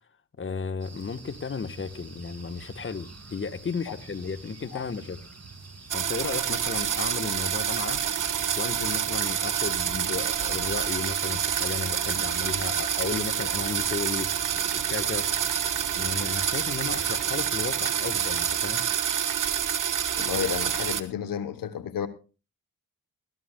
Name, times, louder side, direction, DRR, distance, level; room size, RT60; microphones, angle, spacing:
voice 1, 0.4-5.2 5.9-8.0 8.6-14.3 14.7-15.3 15.9-18.8, left 5 dB, 40° left, 1.1 m, -34 dB
sound 1, 0.8-18.9, right 3 dB, 50° right, 6.2 m, -47 dB
sound 2, 5.9-21.0, right 8 dB, 70° right, 1.3 m, -27 dB
voice 2, 20.2-22.1, left 8 dB, 85° left, 1.0 m, -31 dB
20.5 x 14.5 x 2.2 m
supercardioid pair, 40°, 33 cm